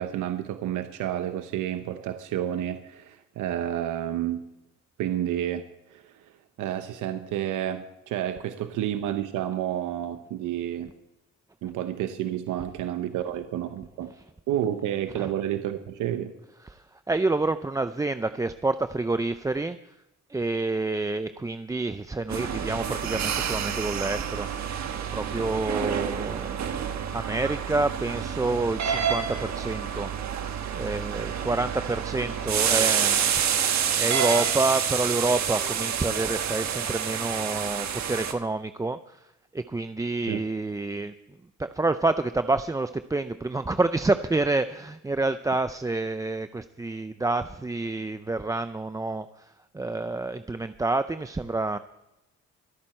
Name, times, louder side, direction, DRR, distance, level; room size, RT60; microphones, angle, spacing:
voice 1, 0.0-4.5 5.0-5.6 5.9-6.1 6.6-10.9 11.6-14.1 14.5-16.3 40.3-40.4, right 11 dB, 85° right, 9 dB, 0.9 m, -30 dB
voice 2, 16.6-19.8 20.3-24.5 25.1-26.6 27.1-30.1 30.7-33.3 34.0-39.3 39.5-41.1 41.6-51.8, right 2 dB, 10° right, 11 dB, 0.4 m, -28 dB
sound 1, 22.3-38.3, right 8 dB, 65° right, 1.4 m, -28 dB
24.0 x 8.9 x 4.4 m, 0.92 s
cardioid pair, 90°, 30 cm